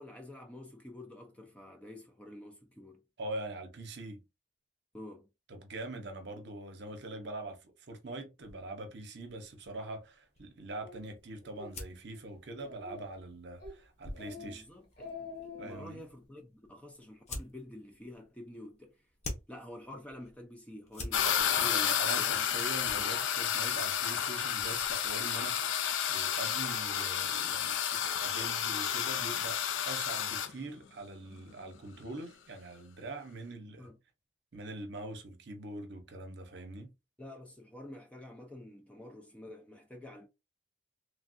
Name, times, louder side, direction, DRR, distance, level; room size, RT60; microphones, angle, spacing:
voice 1, 0.0-3.0 4.9-5.3 14.4-19.0 19.5-22.7 22.9-23.2 33.8-34.0 37.2-40.3, left 1 dB, 5° left, 0.4 m, -49 dB
voice 2, 3.2-4.2 5.5-14.6 15.6-16.0 21.2-21.4 21.6-33.9 34.5-36.9, right 2 dB, 60° right, 0.7 m, -43 dB
sound 1, 8.4-25.3, left 1 dB, 35° left, 0.8 m, -50 dB
Speech, 10.8-11.0 11.4-11.7 12.1-12.2 12.6-13.2 13.6-13.8 14.1-14.5 14.8-15.9, left 4 dB, 55° left, 1.3 m, -46 dB
sound 2, 21.1-30.5, left 9 dB, 75° left, 0.4 m, -31 dB
3.2 x 2.3 x 2.5 m
head